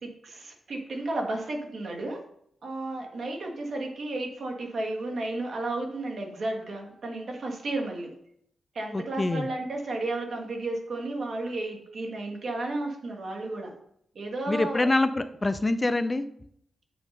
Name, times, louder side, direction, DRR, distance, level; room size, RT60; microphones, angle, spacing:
voice 1, 0.0-2.2 2.6-8.1 8.7-13.7 14.1-14.9, right 2 dB, 65° right, 1 dB, 1.5 m, -33 dB
voice 2, 8.9-9.5 14.5-16.3, left 2 dB, 25° left, 11 dB, 0.4 m, -25 dB
7.7 x 3.6 x 5.3 m, 0.71 s
cardioid pair, 95°, 0 cm